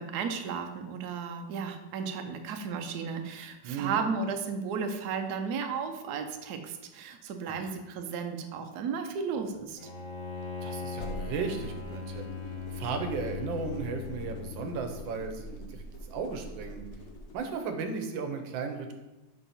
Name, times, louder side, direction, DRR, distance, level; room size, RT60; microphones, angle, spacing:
voice 1, 0.0-9.9, right 5 dB, 70° right, 5 dB, 1.0 m, -34 dB
voice 2, 3.6-4.0 7.5-7.7 10.6-12.2 12.7-16.8 17.3-18.9, right 5 dB, 90° right, 5 dB, 1.5 m, -35 dB
Bowed string instrument, 9.8-15.1, left 5 dB, 50° left, 1.3 m, -39 dB
sound 1, 10.9-17.4, equal, 75° left, 0.6 m, -44 dB
5.7 x 4.6 x 4.0 m, 1.0 s
omnidirectional pair, 2.0 m